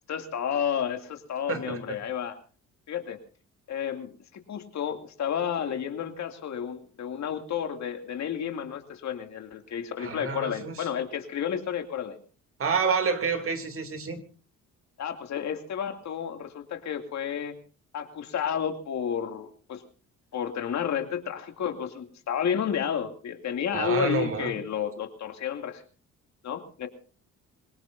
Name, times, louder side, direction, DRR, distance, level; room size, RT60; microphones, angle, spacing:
voice 1, 0.1-2.4 2.9-3.2 3.7-12.2 15.0-17.5 17.9-19.8 20.3-25.8 26.4-26.9, left 8 dB, 65° left, 6 dB, 2.5 m, -31 dB
voice 2, 1.5-1.8 10.0-10.9 12.6-14.2 23.7-24.6, right 5 dB, 45° right, 7 dB, 2.8 m, -28 dB
26.5 x 18.0 x 2.6 m, 0.37 s
cardioid pair, 90°, 30 cm